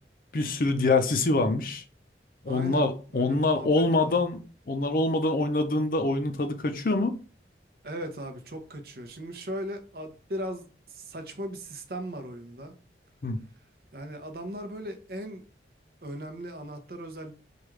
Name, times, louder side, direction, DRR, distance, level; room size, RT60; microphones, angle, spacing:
voice 1, 0.3-1.8 2.4-4.4 4.7-7.1 13.2-13.4, left 2 dB, 50° left, 0.5 m, -25 dB
voice 2, 2.5-2.9 3.1-4.1 7.8-12.7 13.9-15.4 16.0-17.3, right 1 dB, 55° right, 0.7 m, -38 dB
4.8 x 2.3 x 3.1 m
head